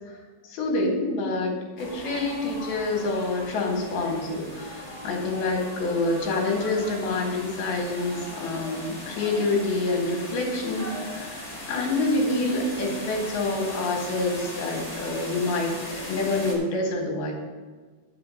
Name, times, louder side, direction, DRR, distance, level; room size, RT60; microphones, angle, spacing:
voice 1, 0.5-17.3, left 2 dB, 70° left, 1 dB, 3.6 m, -27 dB
sound 1, 1.8-16.5, left 1 dB, 20° left, 0.9 m, -38 dB
10.0 x 6.1 x 6.4 m, 1.4 s
omnidirectional pair, 4.7 m